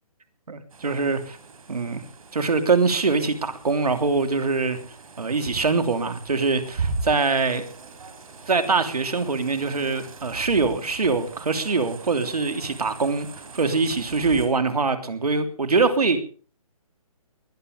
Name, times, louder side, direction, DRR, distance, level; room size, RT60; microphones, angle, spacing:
voice 1, 0.5-1.4 1.7-2.0 2.3-4.8 5.2-7.6 8.5-13.3 13.5-16.2, right 4 dB, 85° right, 8 dB, 3.2 m, -23 dB
sound 1, 0.7-14.5, right 4 dB, 70° right, 4.7 m, -39 dB
20.5 x 12.0 x 5.1 m, 0.40 s
hypercardioid pair, 155°, 19 cm